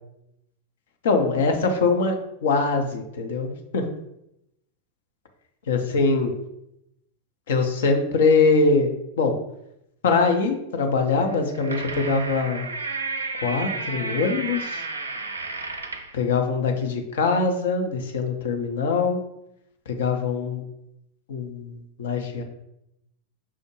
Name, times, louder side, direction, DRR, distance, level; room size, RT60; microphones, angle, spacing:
voice 1, 1.0-2.2 2.4-3.5 3.7-3.8 5.7-6.4 7.5-9.4 10.0-12.7 13.4-14.9 16.1-19.2 19.9-20.6 21.3-22.4, left 4 dB, 65° left, 5 dB, 0.6 m, -23 dB
sound 1, 11.3-16.1, right 3 dB, 80° right, 0.4 m, -32 dB
5.7 x 2.1 x 3.0 m, 0.83 s
figure-of-eight pair, 90°, 0 cm